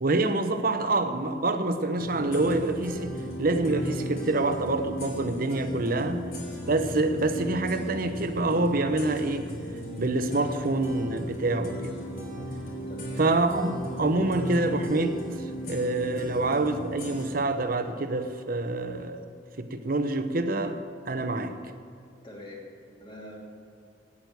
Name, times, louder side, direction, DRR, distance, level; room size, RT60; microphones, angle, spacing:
voice 1, 0.0-3.1 3.4-6.2 6.7-9.5 10.0-11.9 13.2-19.3 19.6-20.8 21.1-21.5, right 2 dB, 50° right, 9 dB, 0.8 m, -26 dB
sound 1, 2.0-17.3, equal, 55° left, 3.4 m, -36 dB
voice 2, 12.9-13.3 22.2-23.4, left 1 dB, 30° left, -2 dB, 2.6 m, -45 dB
9.0 x 8.7 x 9.4 m, 2.5 s
head